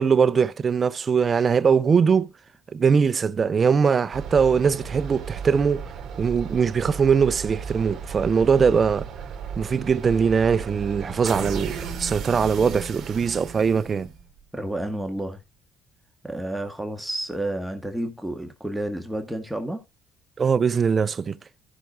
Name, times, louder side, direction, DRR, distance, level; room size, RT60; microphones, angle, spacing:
voice 1, 0.0-2.3 2.7-5.9 6.2-9.1 9.6-14.1 20.4-21.4, right 6 dB, 35° right, 0.6 m, -21 dB
sound 1, 4.1-14.4, right 6 dB, 55° right, 2.3 m, -35 dB
voice 2, 14.5-15.4 16.2-19.8, right 1 dB, 5° right, 1.5 m, -30 dB
15.5 x 5.9 x 2.4 m
supercardioid pair, 90°, 0 cm